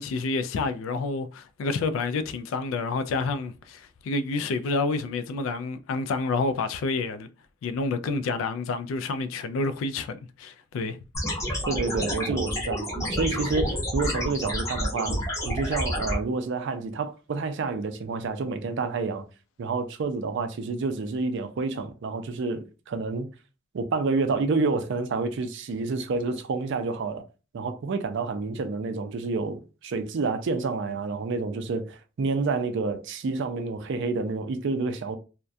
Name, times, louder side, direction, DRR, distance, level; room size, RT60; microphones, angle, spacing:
voice 1, 0.0-7.3 7.6-11.0 11.5-11.6, left 3 dB, 70° left, 0.3 m, -29 dB
sound 1, 11.1-16.2, equal, 15° left, 0.7 m, -29 dB
voice 2, 11.7-19.3 19.6-23.3 23.7-27.2 27.5-35.2, right 4 dB, 60° right, 0.4 m, -29 dB
2.3 x 2.1 x 2.5 m
head